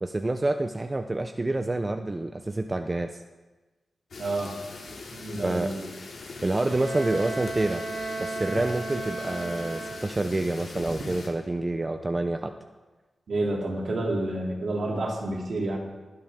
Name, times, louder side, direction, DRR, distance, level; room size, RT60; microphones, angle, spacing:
voice 1, 0.0-3.2 5.4-5.7 6.4-7.8 8.2-12.5, right 2 dB, 25° right, 7 dB, 0.6 m, -28 dB
sound 1, 4.1-11.3, left 3 dB, 85° left, 2.5 m, -41 dB
voice 2, 4.2-4.5 5.1-5.9 13.3-15.8, right 2 dB, 65° right, -1 dB, 3.0 m, -29 dB
Bowed string instrument, 6.7-10.4, right 3 dB, 85° right, 2.3 m, -35 dB
20.0 x 10.5 x 3.7 m, 1.2 s
wide cardioid pair, 125°, 0 cm